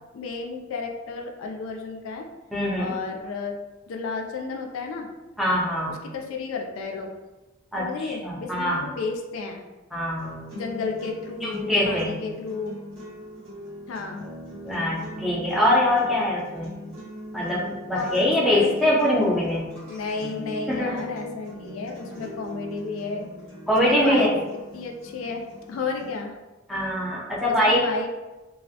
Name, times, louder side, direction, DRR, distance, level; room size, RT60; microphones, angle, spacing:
voice 1, 0.1-2.3 2.8-3.6 3.9-5.1 5.9-7.1 7.8-9.6 10.5-12.8 13.9-14.2 17.9-19.0 19.9-23.3 23.9-24.3 24.7-26.3 27.5-28.1, left 4 dB, 70° left, 2 dB, 0.3 m, -32 dB
voice 2, 2.5-2.9 5.4-5.9 7.7-8.8 9.9-10.4 11.4-12.2 14.6-16.7 17.3-19.7 20.7-21.0 23.7-24.4 26.7-27.8, left 1 dB, ahead, -6 dB, 0.4 m, -23 dB
sound 1, 10.2-26.2, equal, 80° right, 1.1 m, -40 dB
2.3 x 2.0 x 2.7 m, 1.1 s
head